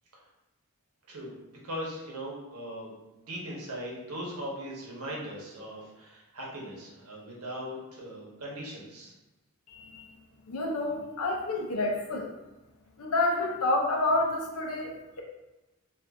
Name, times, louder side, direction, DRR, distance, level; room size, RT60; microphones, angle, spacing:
voice 1, 1.1-9.1, equal, 85° right, -3 dB, 1.0 m, -39 dB
voice 2, 9.7-10.1 10.5-12.3 13.0-15.2, left 2 dB, 75° left, 0 dB, 0.6 m, -29 dB
2.5 x 2.5 x 3.5 m, 1.0 s
head